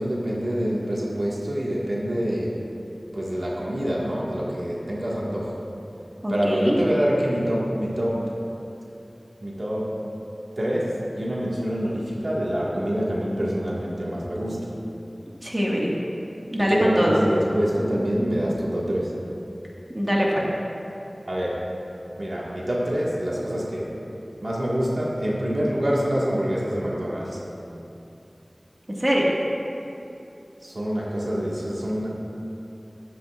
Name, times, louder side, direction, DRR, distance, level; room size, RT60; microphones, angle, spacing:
voice 1, 0.0-2.6 3.1-5.6 6.3-8.2 9.4-9.9 10.5-14.7 16.7-19.1 21.3-21.6 22.2-23.9 24.4-27.4 30.6-32.1, equal, 65° right, -5 dB, 1.7 m, -26 dB
voice 2, 6.2-6.8 15.4-15.9 16.5-17.2 19.9-20.5 29.0-29.3, equal, 25° right, -4 dB, 1.7 m, -22 dB
13.0 x 12.0 x 2.5 m, 2.8 s
wide cardioid pair, 50°, 0 cm